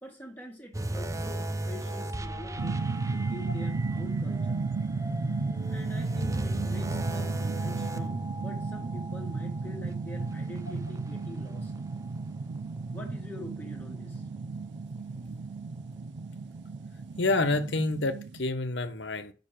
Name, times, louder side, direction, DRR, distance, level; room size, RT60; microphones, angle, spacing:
voice 1, 0.0-2.8 3.1-4.7 5.7-11.7 12.9-14.3, left 1 dB, 10° left, 1.7 m, -45 dB
sound 1, 0.7-12.2 12.6-12.8 13.4-13.5, right 1 dB, 15° right, 0.6 m, -37 dB
sound 2, 2.6-18.4, right 3 dB, 75° right, 0.5 m, -34 dB
voice 2, 17.2-19.3, left 2 dB, 75° left, 1.1 m, -28 dB
6.8 x 6.1 x 7.4 m
head